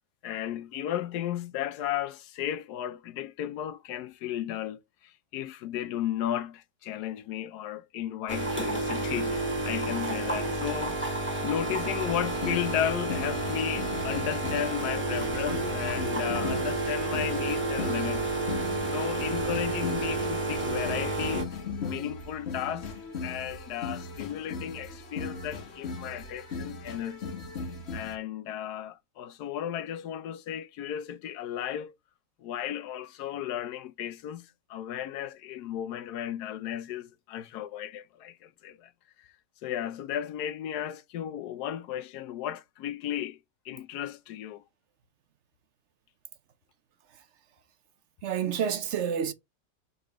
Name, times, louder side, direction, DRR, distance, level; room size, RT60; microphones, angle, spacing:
voice 1, 0.2-11.0 11.4-18.6 18.9-21.6 21.8-22.9 23.2-27.3 27.9-31.9 32.4-38.9 39.6-43.4 43.6-44.6, left 11 dB, 80° left, 1.2 m, -34 dB
sound 1, 8.3-21.4, right 2 dB, 5° right, 2.1 m, -30 dB
sound 2, 12.1-28.2, left 4 dB, 45° left, 1.2 m, -38 dB
voice 2, 48.2-49.3, right 8 dB, 60° right, 0.8 m, -29 dB
5.4 x 3.8 x 5.0 m
omnidirectional pair, 1.7 m